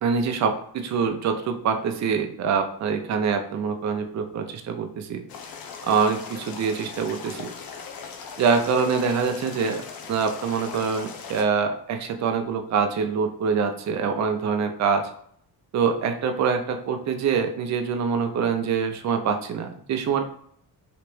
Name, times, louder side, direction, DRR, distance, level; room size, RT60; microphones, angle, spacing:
voice 1, 0.0-5.2 5.8-7.5 8.4-9.8 10.1-15.1 15.7-20.2, right 6 dB, 45° right, 5 dB, 0.5 m, -25 dB
sound 1, 5.3-11.4, left 6 dB, 60° left, 0.7 m, -39 dB
3.3 x 2.9 x 3.1 m, 0.64 s
cardioid pair, 105°, 40 cm